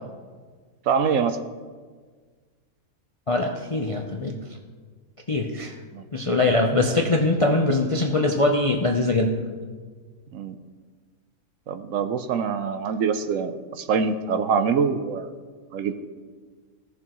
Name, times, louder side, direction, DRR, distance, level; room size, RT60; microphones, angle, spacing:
voice 1, 0.9-1.4 5.9-6.0 10.3-10.6 11.7-15.3 15.7-15.9, right 6 dB, 70° right, 9 dB, 1.0 m, -24 dB
voice 2, 3.3-4.3 5.3-5.7 6.1-9.3, left 2 dB, 40° left, 2 dB, 0.5 m, -22 dB
16.5 x 7.0 x 3.0 m, 1.5 s
omnidirectional pair, 1.5 m